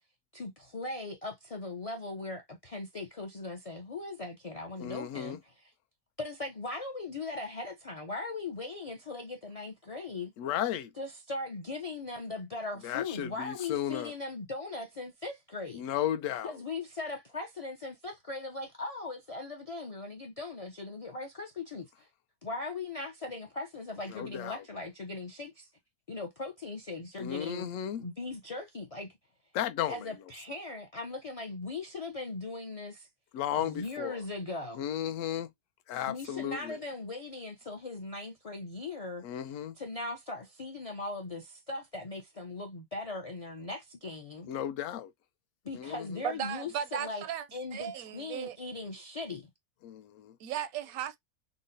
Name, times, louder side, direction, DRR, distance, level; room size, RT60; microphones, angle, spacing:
voice 1, 0.3-5.7 6.2-10.3 11.0-15.8 16.4-22.1 22.4-25.7 26.1-27.7 28.0-29.1 29.9-33.1 33.6-34.8 36.1-39.2 39.8-44.5 45.6-47.2 47.5-49.5, left 3 dB, 45° left, 0.4 m, -39 dB
voice 2, 4.8-5.4 10.4-10.9 12.8-14.1 15.7-16.5 24.1-24.6 27.2-28.0 29.5-29.9 33.3-34.2 34.8-35.5 35.9-36.8 39.2-39.7 44.5-45.1 45.7-46.1 49.8-50.3, left 10 dB, 70° left, 0.9 m, -34 dB
voice 3, 46.2-47.5 47.7-48.6 50.4-51.2, right 9 dB, 85° right, 1.0 m, -36 dB
3.8 x 2.1 x 2.6 m
omnidirectional pair, 1.5 m